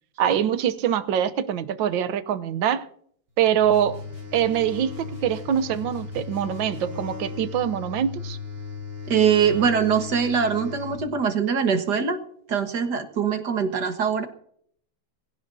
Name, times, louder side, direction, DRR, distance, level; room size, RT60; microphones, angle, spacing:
voice 1, 0.2-2.9 3.4-4.0 4.3-8.4, right 9 dB, 75° right, 1.6 m, -24 dB
sound 1, 3.4-11.0, left 4 dB, 35° right, 1.3 m, -37 dB
sound 2, 3.7-7.1, left 2 dB, 60° left, 6.9 m, -48 dB
voice 2, 9.1-12.2 12.5-14.3, right 7 dB, 60° right, 1.9 m, -22 dB
20.0 x 17.0 x 2.7 m
omnidirectional pair, 2.1 m